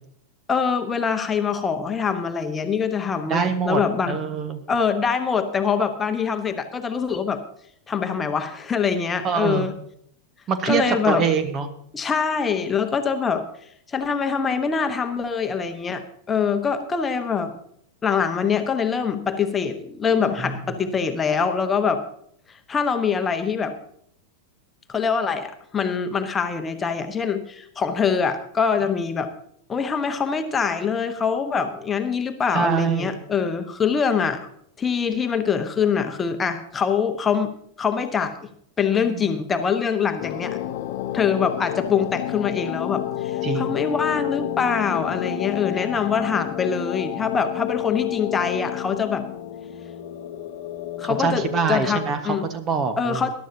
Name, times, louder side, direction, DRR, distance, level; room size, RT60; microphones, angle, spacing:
voice 1, 0.5-4.2 4.7-7.4 7.9-9.7 10.7-11.2 11.9-13.4 13.9-17.5 18.0-22.0 22.7-23.8 24.9-29.3 29.7-34.5 34.8-37.5 37.8-38.4 38.8-40.6 41.1-49.2 51.0-52.4 53.0-53.3, left 6 dB, 20° left, 7 dB, 1.1 m, -24 dB
voice 2, 3.3-3.8 4.1-4.6 9.2-9.7 10.5-11.7 20.4-20.6 32.5-33.2 39.0-39.2 43.4-43.8 45.8-45.9 51.0-53.3, right 6 dB, 30° right, 10 dB, 1.4 m, -24 dB
sound 1, 40.2-52.2, left 13 dB, 50° left, 0.9 m, -30 dB
21.0 x 11.5 x 2.8 m, 0.67 s
figure-of-eight pair, 90°, 0 cm